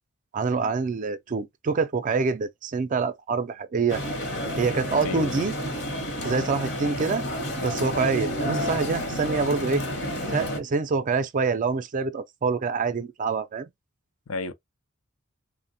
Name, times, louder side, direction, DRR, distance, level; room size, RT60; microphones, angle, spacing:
voice 1, 0.3-4.0 4.6-5.5 6.2-7.2 7.6-9.8 10.3-13.7, right 4 dB, 40° right, 0.4 m, -26 dB
sound 1, 3.9-10.6, equal, 55° left, 0.9 m, -30 dB
voice 2, 5.0-5.5 14.3-14.5, left 2 dB, 85° left, 0.5 m, -32 dB
3.2 x 2.1 x 2.6 m
head